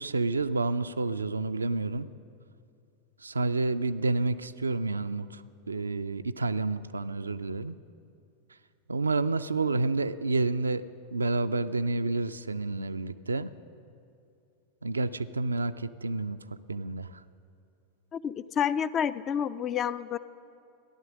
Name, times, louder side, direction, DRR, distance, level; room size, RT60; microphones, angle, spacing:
voice 1, 0.0-2.1 3.2-7.8 8.9-10.8 11.1-13.5 14.8-16.4 16.7-17.2, right 3 dB, 75° right, 12 dB, 0.4 m, -29 dB
voice 2, 18.1-20.2, left 8 dB, 30° left, 16 dB, 0.3 m, -29 dB
14.0 x 11.0 x 6.3 m, 2.5 s
figure-of-eight pair, 90°, 0 cm